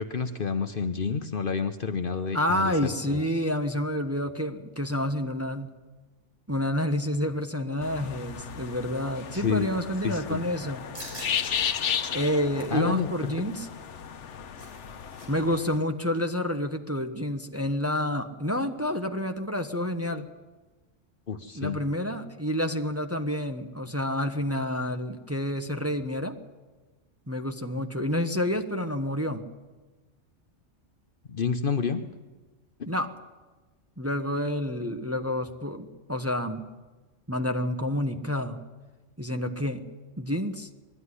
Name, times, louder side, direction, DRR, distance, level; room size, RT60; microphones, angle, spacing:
voice 1, 0.0-2.7 3.1-3.2 9.3-9.7 10.0-10.4 12.7-13.1 21.3-21.8 31.3-32.0, left 5 dB, 50° left, 8 dB, 1.0 m, -29 dB
voice 2, 2.3-5.7 6.5-10.9 12.1-13.7 15.3-20.3 21.5-26.4 27.3-29.4 32.9-33.1 34.0-36.6 37.3-38.6 39.2-39.8 40.2-40.7, left 1 dB, 15° right, 5 dB, 1.0 m, -29 dB
sound 1, 7.8-15.8, left 8 dB, 70° left, 1.2 m, -34 dB
sound 2, 10.9-11.4 11.9-12.0 12.4-12.8 14.1-15.3 15.5-15.7 16.0-16.3, right 1 dB, 85° right, 6.3 m, -44 dB
20.5 x 13.5 x 9.8 m, 1.2 s
omnidirectional pair, 1.3 m